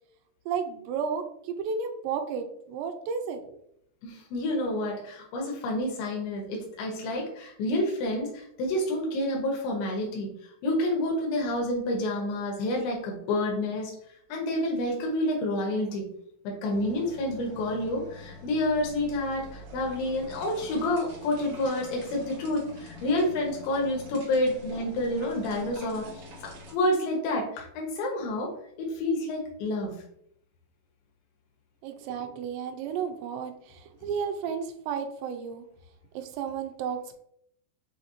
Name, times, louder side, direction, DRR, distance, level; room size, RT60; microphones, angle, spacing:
voice 1, 0.5-3.6 31.8-35.7 36.1-37.2, right 6 dB, 85° right, 6 dB, 2.7 m, -33 dB
voice 2, 4.0-13.9 14.3-16.1 16.4-28.5 28.8-30.0, left 1 dB, 90° left, 0 dB, 3.1 m, -29 dB
sound 1, 16.7-26.7, left 1 dB, 55° right, 2.1 m, -46 dB
7.2 x 2.6 x 2.8 m, 0.71 s
omnidirectional pair, 4.9 m